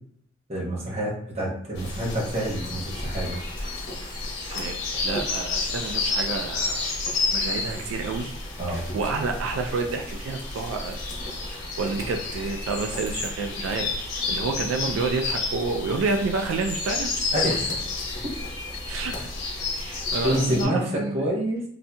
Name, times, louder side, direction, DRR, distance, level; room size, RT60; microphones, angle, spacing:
voice 1, 0.5-3.4 8.6-8.9 17.3-17.7 20.2-20.8 21.1-21.6, right 1 dB, 30° right, -3 dB, 0.9 m, -27 dB
sound 1, 1.7-20.6, left 3 dB, 60° left, 1.1 m, -30 dB
voice 2, 4.5-6.9 7.3-8.3 8.7-11.0 11.5-17.3 18.9-19.3 19.7-21.3, right 3 dB, 80° right, 4 dB, 0.3 m, -29 dB
4.0 x 2.6 x 2.2 m, 0.65 s
head